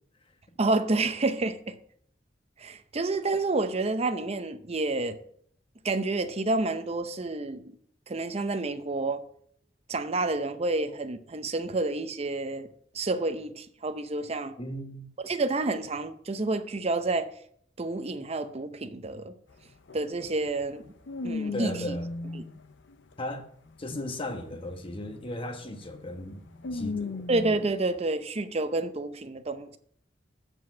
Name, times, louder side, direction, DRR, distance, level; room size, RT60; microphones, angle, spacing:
voice 1, 0.6-1.8 2.6-5.2 5.8-7.7 8.1-9.2 9.9-12.7 12.9-14.5 15.2-17.3 17.8-19.3 19.9-20.8 21.2-22.0 22.3-22.4 27.3-29.8, right 2 dB, 35° right, 0.7 m, -29 dB
voice 2, 14.6-15.1 21.5-22.1 23.2-23.5 23.8-26.4 26.7-27.3, left 1 dB, 30° left, 1.1 m, -36 dB
sound 1, 19.5-19.6 19.9-23.1 23.7-27.7, left 3 dB, 80° left, 0.6 m, -37 dB
8.0 x 4.9 x 7.0 m
head